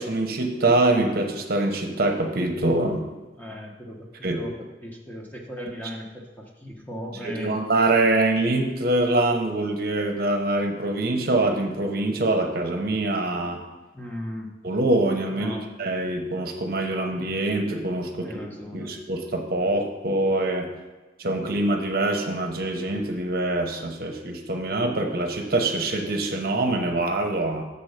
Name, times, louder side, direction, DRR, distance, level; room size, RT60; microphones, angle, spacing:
voice 1, 0.0-3.1 4.2-4.4 7.2-13.6 14.6-18.3 18.7-20.7 21.2-27.6, right 2 dB, 55° right, 3 dB, 0.9 m, -24 dB
voice 2, 3.4-7.5 13.9-14.5 15.3-15.7 18.1-18.9, equal, 10° left, -1 dB, 0.9 m, -37 dB
6.9 x 4.4 x 6.6 m, 1.2 s
head